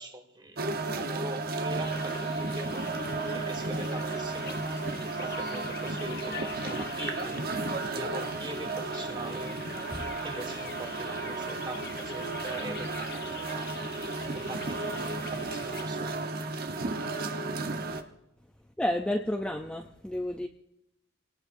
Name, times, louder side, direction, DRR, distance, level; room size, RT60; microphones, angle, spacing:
voice 1, 0.0-3.1 3.3-4.8 5.0-7.4 7.9-9.6 10.2-16.2, right 1 dB, 20° right, 5 dB, 1.5 m, -42 dB
sound 1, 0.6-18.0, right 3 dB, 50° right, 1.1 m, -33 dB
sound 2, 1.8-15.9, left 8 dB, 55° left, 0.8 m, -46 dB
voice 2, 18.8-20.5, left 1 dB, 5° left, 4 dB, 0.5 m, -31 dB
26.0 x 18.5 x 2.6 m, 0.84 s
head